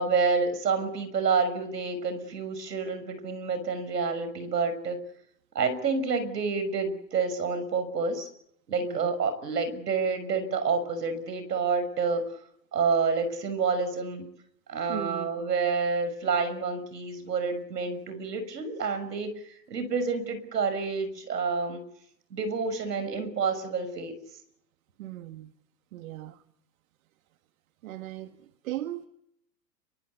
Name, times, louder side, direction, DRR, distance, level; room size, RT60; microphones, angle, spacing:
voice 1, 0.0-5.0 5.5-8.3 8.7-12.4 12.7-14.3 14.7-19.3 19.7-21.8 22.3-24.1, right 4 dB, 70° right, 11 dB, 6.3 m, -28 dB
voice 2, 14.9-15.3 25.0-25.5 25.9-26.4 27.8-29.1, right 14 dB, 55° right, 9 dB, 1.8 m, -38 dB
29.5 x 24.0 x 8.3 m, 0.73 s
figure-of-eight pair, 105°, 50 cm